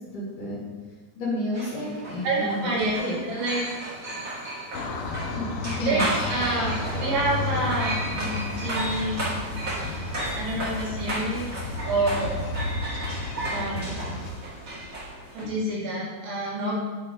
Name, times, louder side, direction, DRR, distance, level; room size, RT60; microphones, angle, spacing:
voice 1, 0.1-0.6 1.2-3.2 5.3-6.1 15.4-15.5, left 1 dB, 60° left, -6 dB, 2.8 m, -31 dB
sound 1, 1.5-15.4, right 1 dB, 50° right, 1.0 m, -34 dB
voice 2, 2.2-3.0 3.3-3.6 5.7-6.7 7.0-9.4 9.8-12.4 13.5-14.0 15.3-16.8, right 2 dB, 80° right, -5 dB, 3.9 m, -28 dB
sound 2, 4.7-14.3, left 2 dB, 85° left, 2.9 m, -32 dB
10.5 x 4.4 x 3.5 m, 1.3 s
omnidirectional pair, 4.7 m